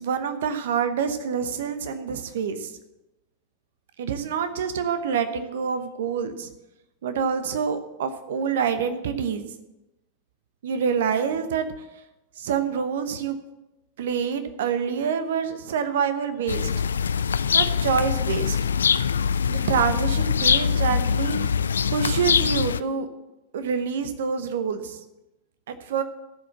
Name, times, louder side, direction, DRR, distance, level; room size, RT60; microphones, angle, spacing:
voice 1, 0.0-2.7 4.0-6.5 7.0-9.4 10.6-11.6 12.4-13.4 14.0-16.7 17.5-18.6 19.5-21.4 21.9-23.1 23.5-25.0 25.7-26.0, right 6 dB, 60° right, 10 dB, 1.0 m, -26 dB
sound 1, 16.5-22.8, left 7 dB, 70° left, 0.3 m, -23 dB
14.0 x 5.1 x 7.5 m, 0.97 s
figure-of-eight pair, 90°, 0 cm